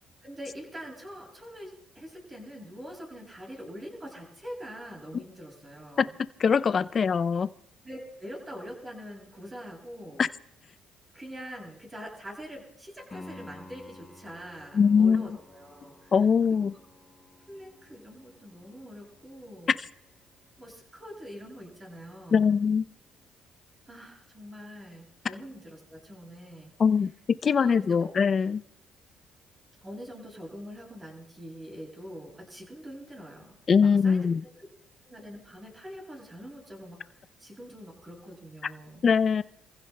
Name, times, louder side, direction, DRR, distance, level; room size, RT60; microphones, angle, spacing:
voice 1, 0.2-6.2 7.8-10.3 11.1-16.1 16.6-16.7 17.5-19.8 20.6-22.6 23.9-26.7 27.4-28.1 29.8-34.5 35.0-39.0, equal, 20° right, 7.3 m, -44 dB
voice 2, 6.4-7.5 10.2-10.3 14.7-15.3 16.1-16.7 22.3-22.8 26.8-27.1 27.4-28.6 33.7-34.4 39.0-39.4, left 6 dB, 45° left, 0.5 m, -22 dB
Piano, 13.1-23.8 27.1-27.2, left 2 dB, 20° left, 4.1 m, -53 dB
30.0 x 15.5 x 2.2 m
cardioid pair, 85°, 0 cm